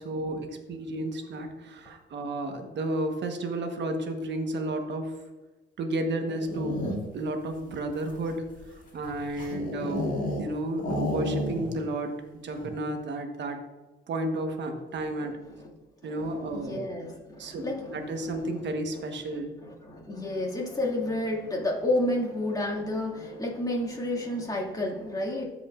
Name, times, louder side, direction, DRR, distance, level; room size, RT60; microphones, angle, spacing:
voice 1, 0.0-5.1 5.8-8.4 8.9-12.1 12.4-13.6 14.1-15.4 16.0-16.9 17.4-19.6, right 1 dB, 65° right, 5 dB, 1.3 m, -32 dB
sound 1, 6.2-7.3 7.9-10.5 10.8-11.9 12.1-12.2 12.5-12.9, left 1 dB, 40° left, 2.3 m, -32 dB
voice 2, 15.2-15.7 16.0-18.7 18.9-19.0 19.6-25.4, left 1 dB, 20° left, -2 dB, 2.3 m, -31 dB
13.5 x 5.1 x 2.5 m, 1.2 s
cardioid pair, 90°, 20 cm